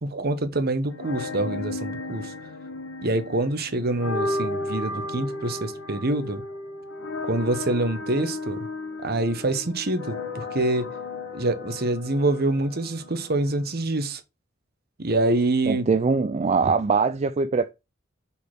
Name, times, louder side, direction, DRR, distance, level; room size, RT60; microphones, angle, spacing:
voice 1, 0.0-2.3 3.0-6.4 7.2-8.7 9.0-10.9 11.3-14.2 15.0-15.9, right 2 dB, 55° right, 1.1 m, -26 dB
sound 1, 0.9-13.8, left 2 dB, 85° left, 1.7 m, -34 dB
voice 2, 15.7-17.7, right 4 dB, 35° right, 0.4 m, -22 dB
5.4 x 4.4 x 6.1 m
head